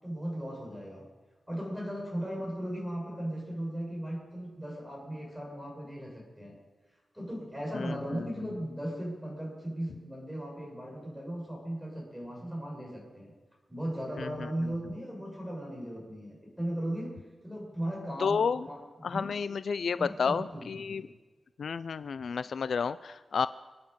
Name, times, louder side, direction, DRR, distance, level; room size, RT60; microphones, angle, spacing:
voice 1, 0.0-1.1 1.5-6.6 7.1-13.3 13.7-19.5 20.0-21.0, right 1 dB, ahead, -3 dB, 6.5 m, -37 dB
voice 2, 7.7-8.3 14.2-14.3 18.2-18.6 19.0-21.0 21.6-23.5, left 6 dB, 70° left, 14 dB, 0.4 m, -31 dB
27.5 x 9.6 x 5.3 m, 1.2 s
wide cardioid pair, 135°, 0 cm